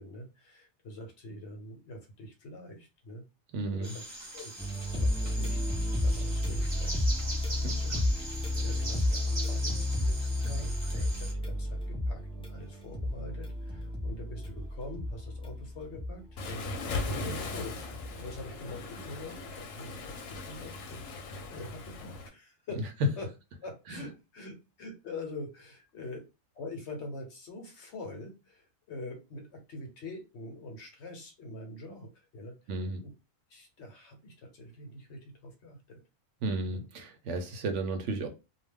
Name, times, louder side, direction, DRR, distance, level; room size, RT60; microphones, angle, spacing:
voice 1, 0.0-3.2 3.7-4.1 4.3-5.6 6.0-7.1 7.4-8.0 8.6-22.9 23.2-23.3 23.6-26.2 26.5-32.7 33.0-33.1 33.5-36.0 36.6-36.8, left 2 dB, 60° left, 1.0 m, -44 dB
voice 2, 3.5-3.9 23.9-24.0 32.7-33.0 36.4-38.3, right 3 dB, 70° right, 0.9 m, -33 dB
sound 1, 3.8-11.3, right 1 dB, 40° right, 0.9 m, -41 dB
sound 2, 4.6-18.4, left 1 dB, 10° left, 0.4 m, -32 dB
Waves surf, 16.4-22.3, left 2 dB, 85° left, 1.0 m, -39 dB
2.4 x 2.2 x 3.3 m
omnidirectional pair, 1.3 m